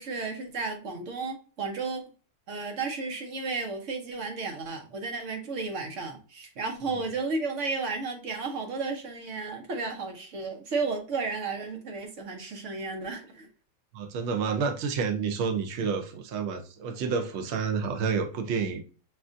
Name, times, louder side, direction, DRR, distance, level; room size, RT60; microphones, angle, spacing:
voice 1, 0.0-2.0 2.5-13.5, right 4 dB, 55° right, 1.1 m, -33 dB
voice 2, 13.9-18.8, right 5 dB, 85° right, 0.6 m, -29 dB
6.4 x 2.4 x 2.5 m
omnidirectional pair, 1.8 m